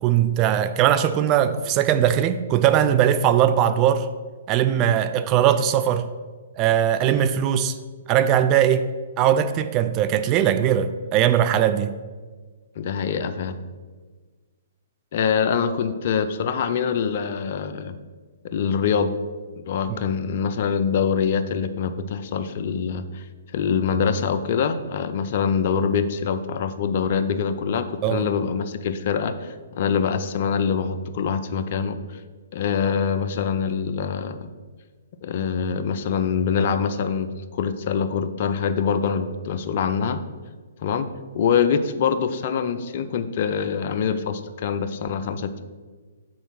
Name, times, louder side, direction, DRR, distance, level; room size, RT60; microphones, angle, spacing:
voice 1, 0.0-4.1 4.5-6.1 6.6-7.8 8.1-8.9 9.2-11.9 19.9-20.0 28.0-28.3, right 10 dB, 30° right, 11 dB, 0.4 m, -20 dB
voice 2, 12.8-13.5 15.1-17.9 18.4-19.1 19.6-23.3 23.5-32.2 32.5-34.5 35.2-40.2 40.8-41.1 41.3-45.6, left 6 dB, 50° left, 10 dB, 0.5 m, -24 dB
6.3 x 4.0 x 5.9 m, 1.4 s
hypercardioid pair, 130°, 0 cm